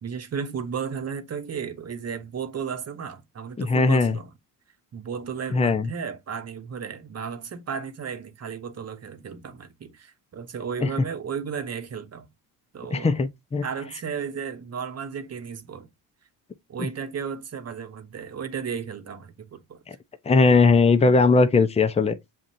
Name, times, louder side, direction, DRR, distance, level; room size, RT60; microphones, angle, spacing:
voice 1, 0.0-4.3 4.9-12.3 12.7-13.2 13.6-15.9 16.7-19.8 20.4-20.6, right 6 dB, 40° right, 1.0 m, -34 dB
voice 2, 3.6-4.1 5.5-5.9 12.9-13.6 19.9-20.0 20.3-22.2, left 4 dB, 15° left, 0.6 m, -19 dB
7.3 x 2.5 x 2.7 m
supercardioid pair, 85°, 40 cm